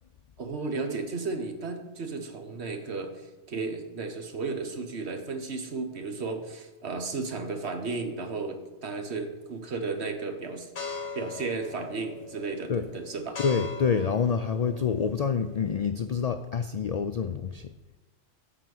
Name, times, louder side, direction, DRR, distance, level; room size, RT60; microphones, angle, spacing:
voice 1, 0.4-13.4, right 3 dB, 60° right, 5 dB, 1.4 m, -34 dB
sound 1, 10.8-15.8, left 4 dB, 60° left, 2.0 m, -41 dB
voice 2, 13.4-17.7, left 6 dB, 85° left, 8 dB, 0.3 m, -27 dB
10.0 x 4.5 x 7.7 m, 1.1 s
omnidirectional pair, 1.3 m